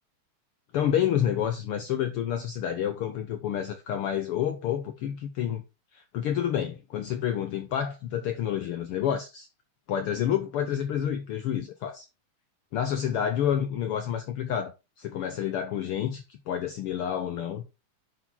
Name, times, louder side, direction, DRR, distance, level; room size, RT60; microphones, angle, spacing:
voice 1, 0.7-5.6 5.9-9.5 9.9-12.1 12.7-17.6, left 9 dB, 80° left, 1.2 m, -29 dB
9.8 x 4.8 x 3.6 m
omnidirectional pair, 3.3 m